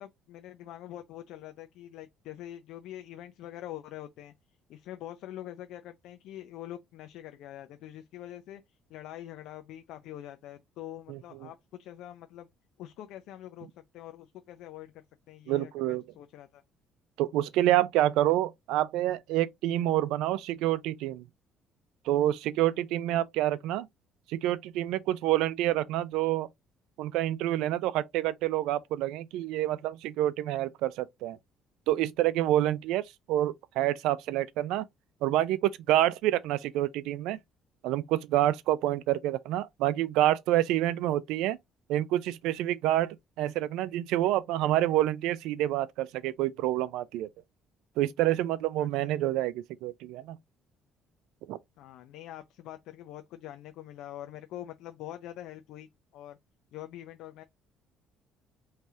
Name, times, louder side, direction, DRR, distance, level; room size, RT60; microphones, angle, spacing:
voice 1, 0.0-4.3 4.7-12.5 12.8-16.6 22.7-22.8 48.8-49.3 51.8-56.4 56.7-57.4, left 12 dB, 70° left, 0.5 m, -45 dB
voice 2, 11.1-11.5 15.5-16.0 17.2-21.2 22.1-23.9 24.3-26.5 27.0-31.4 31.9-34.8 35.2-37.4 37.8-41.6 41.9-47.3 48.0-50.4 51.5-51.6, right 14 dB, 85° right, 0.5 m, -28 dB
4.7 x 3.2 x 2.7 m
cardioid pair, 165°, 0 cm